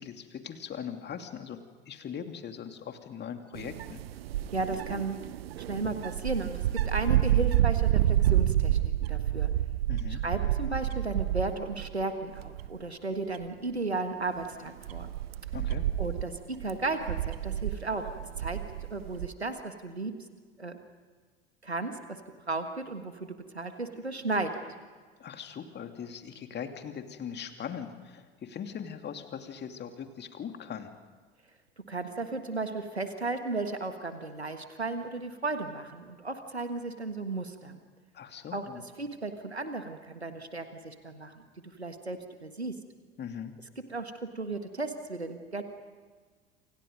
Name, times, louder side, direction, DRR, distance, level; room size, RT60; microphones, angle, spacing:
voice 1, 0.0-1.6 1.9-4.0 9.9-10.2 15.5-15.9 25.2-30.9 38.1-38.9 43.2-43.5, left 8 dB, 35° left, 6 dB, 2.6 m, -40 dB
sound 1, 3.5-12.0 12.4-12.8 13.3-13.4 14.3-19.3, right 12 dB, 70° right, 0.8 m, -29 dB
voice 2, 4.5-5.3 5.5-9.5 10.1-15.1 16.0-18.1 18.4-18.6 18.9-20.1 20.6-20.8 21.6-22.2 22.5-24.6 31.8-37.8 38.5-42.8 43.9-45.6, right 3 dB, 90° right, 8 dB, 1.6 m, -35 dB
29.0 x 27.5 x 5.3 m, 1.5 s
figure-of-eight pair, 70°, 31 cm